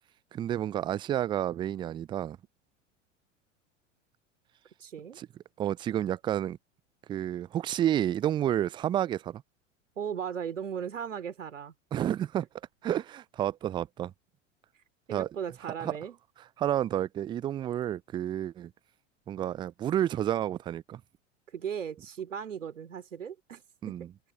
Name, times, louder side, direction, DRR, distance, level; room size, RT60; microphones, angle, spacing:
voice 1, 0.3-2.4 5.2-5.3 5.6-6.6 7.1-9.4 11.9-12.5 12.8-14.1 15.1-15.3 15.8-15.9 16.6-18.7 19.3-21.0 23.8-24.1, right 11 dB, 15° right, 0.3 m, -30 dB
voice 2, 4.8-5.2 10.0-11.7 15.1-16.2 21.5-24.1, right 8 dB, 75° right, 2.7 m, -37 dB
open air
figure-of-eight pair, 85°, 38 cm